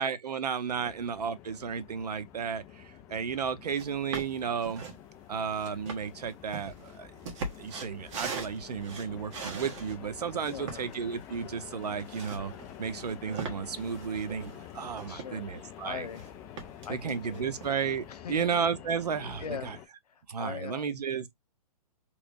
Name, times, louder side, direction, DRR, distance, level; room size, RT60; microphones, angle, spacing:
voice 1, 0.0-4.8 5.3-12.5 12.8-16.1 16.9-19.8 20.3-21.2, right 6 dB, 85° right, 0.7 m, -33 dB
sound 1, 0.7-19.9, left 10 dB, 15° left, 0.4 m, -48 dB
sound 2, 3.8-3.9 4.1-5.0 5.5-10.0 10.4-15.6 15.9-16.3 16.6-17.7, right 4 dB, 50° right, 1.3 m, -41 dB
voice 2, 10.0-10.9 15.1-17.5 18.1-18.5 19.4-19.7 20.0-20.9, left 7 dB, 75° left, 1.0 m, -42 dB
3.3 x 3.1 x 2.5 m
hypercardioid pair, 145°, 20 cm